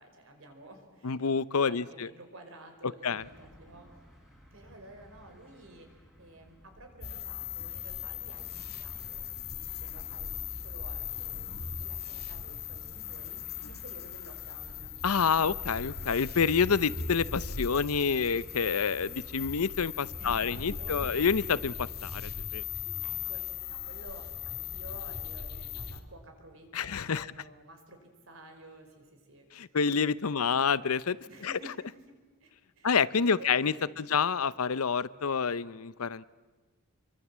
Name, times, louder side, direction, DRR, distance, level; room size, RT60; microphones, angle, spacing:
voice 1, 0.0-1.2 1.6-3.9 4.5-9.3 9.8-10.3 10.6-15.0 20.2-21.3 23.0-29.8 30.3-30.8 31.3-32.9 33.2-33.9, right 1 dB, 65° right, 5 dB, 4.7 m, -52 dB
voice 2, 1.0-2.1 3.0-3.2 15.0-22.6 26.7-27.3 29.5-31.2 31.4-31.5 32.8-36.2, left 6 dB, 90° left, 18 dB, 0.7 m, -28 dB
sound 1, 3.2-21.6, equal, ahead, 3.9 m, -56 dB
sound 2, 7.0-26.0, left 7 dB, 45° left, 1.9 m, -39 dB
27.0 x 23.5 x 7.4 m, 1.3 s
head